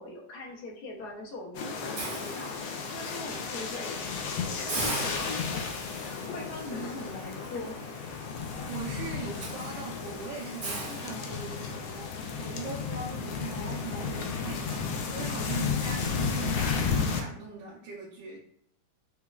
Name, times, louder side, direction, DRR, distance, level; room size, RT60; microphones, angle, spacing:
voice 1, 0.0-4.1 4.4-5.6 5.9-7.8 8.1-8.4 10.8-11.2 12.6-12.8, left 2 dB, 65° left, -1 dB, 1.0 m, -42 dB
sound 1, 1.6-17.2, left 5 dB, 85° left, 1.4 m, -33 dB
Hiss, 2.0-3.1 3.6-3.8 4.1-4.2 4.7-11.8, right 3 dB, 60° right, 0.8 m, -40 dB
voice 2, 8.7-18.4, right 4 dB, 85° right, -5 dB, 1.5 m, -40 dB
5.2 x 2.2 x 2.3 m, 0.66 s
omnidirectional pair, 2.2 m